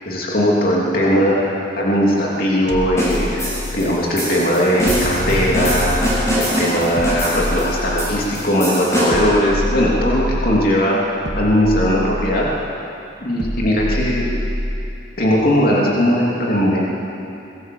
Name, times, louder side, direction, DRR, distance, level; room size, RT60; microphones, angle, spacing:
voice 1, 0.1-11.0 11.4-12.5 13.2-14.3 15.2-16.8, equal, 50° left, -4 dB, 3.1 m, -18 dB
sound 1, 2.7-4.0 4.8-6.5 7.0-8.4 9.1-10.7 11.3-12.7 13.4-15.0, equal, 65° right, 2.2 m, -26 dB
sound 2, 3.0-9.3, equal, 15° left, 6.9 m, -24 dB
sound 3, 4.7-6.9, equal, 85° left, 6.9 m, -30 dB
23.0 x 18.0 x 7.9 m, 2.8 s
head